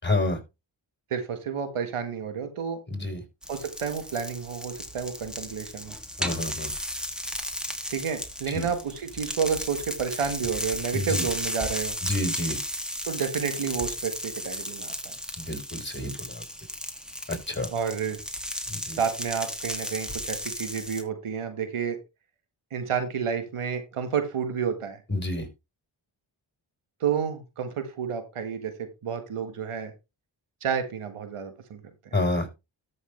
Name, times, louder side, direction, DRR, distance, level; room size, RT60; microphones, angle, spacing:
voice 1, 0.0-0.4 2.9-3.2 6.2-6.7 8.5-8.7 10.9-11.2 12.0-12.6 15.4-16.4 17.3-17.7 18.7-19.0 25.1-25.5 32.1-32.5, left 2 dB, 20° left, 6 dB, 4.6 m, -29 dB
voice 2, 1.1-2.8 3.5-6.0 7.9-12.0 13.1-15.1 17.7-18.2 19.0-22.0 22.7-25.0 27.0-29.9 30.6-31.8, right 7 dB, 90° right, 8 dB, 1.8 m, -30 dB
sound 1, 3.4-21.0, equal, ahead, 2.4 m, -35 dB
13.5 x 6.5 x 3.3 m, 0.25 s
cardioid pair, 40°, 49 cm